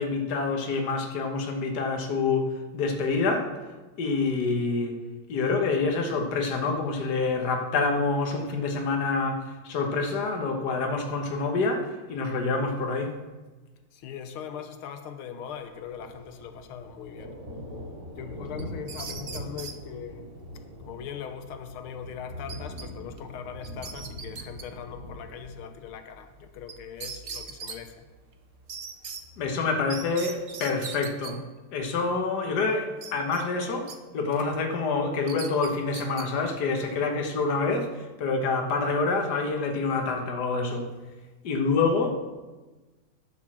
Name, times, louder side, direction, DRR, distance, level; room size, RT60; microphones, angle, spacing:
voice 1, 0.0-3.6 4.0-5.0 5.3-13.1 29.4-31.4 31.7-40.9 41.4-42.1, left 4 dB, 55° left, 1.7 m, -27 dB
voice 2, 13.9-17.3 18.1-20.3 20.8-28.1, left 8 dB, 90° left, 1.7 m, -40 dB
Thunder, 15.5-31.0, equal, 50° right, 3.3 m, -43 dB
sound 1, 18.6-19.8 22.5-22.9 23.2-23.3 23.6-24.6 26.7-26.8 27.0-27.8 28.7-29.2 29.9-31.3 33.0-34.0 34.3-34.6 35.3-36.3, right 5 dB, 65° right, 0.5 m, -39 dB
11.0 x 6.5 x 7.4 m
omnidirectional pair, 2.3 m